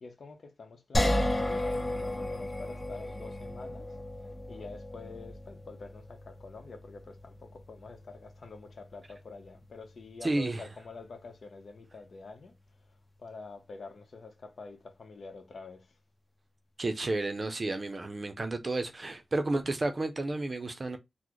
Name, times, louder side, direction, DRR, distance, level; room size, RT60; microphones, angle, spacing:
voice 1, 0.0-3.9 4.5-12.5 13.2-15.9, left 3 dB, 65° left, 0.7 m, -47 dB
sound 1, 0.9-14.0, left 1 dB, 35° left, 1.0 m, -36 dB
voice 2, 10.2-10.6 16.8-21.0, right 2 dB, 40° right, 0.5 m, -31 dB
3.8 x 2.0 x 3.0 m
wide cardioid pair, 85°, 0 cm